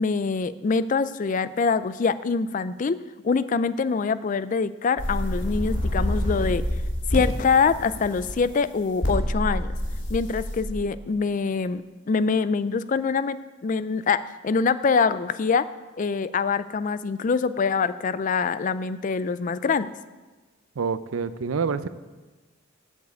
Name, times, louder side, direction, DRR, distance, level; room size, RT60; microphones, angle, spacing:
voice 1, 0.0-3.0 3.2-6.7 7.1-9.8 10.1-15.7 16.0-19.9, left 5 dB, 40° left, 15 dB, 0.3 m, -24 dB
sound 1, 5.0-8.4 9.0-10.6, equal, 60° left, 2.5 m, -27 dB
voice 2, 20.8-21.9, right 5 dB, 85° right, 14 dB, 0.5 m, -27 dB
8.2 x 7.2 x 7.9 m, 1.2 s
head